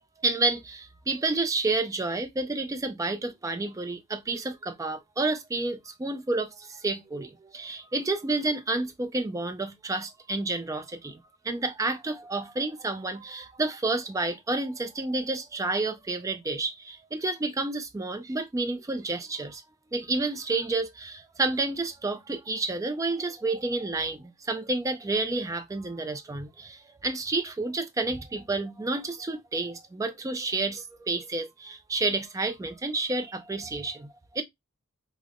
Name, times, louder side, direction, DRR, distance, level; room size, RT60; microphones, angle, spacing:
voice 1, 0.2-19.6 19.9-34.4, right 3 dB, 15° right, 0.3 m, -30 dB
5.0 x 2.0 x 2.4 m
head